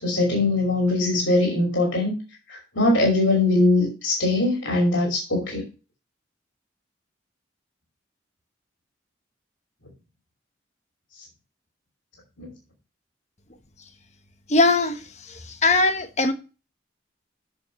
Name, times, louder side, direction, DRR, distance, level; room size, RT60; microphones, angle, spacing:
voice 1, 0.0-2.2 2.5-5.6 12.4-12.5, left 2 dB, 85° left, 2.8 m, -21 dB
voice 2, 14.5-15.0 15.6-16.3, left 3 dB, 35° left, 1.1 m, -19 dB
7.4 x 6.4 x 4.3 m
head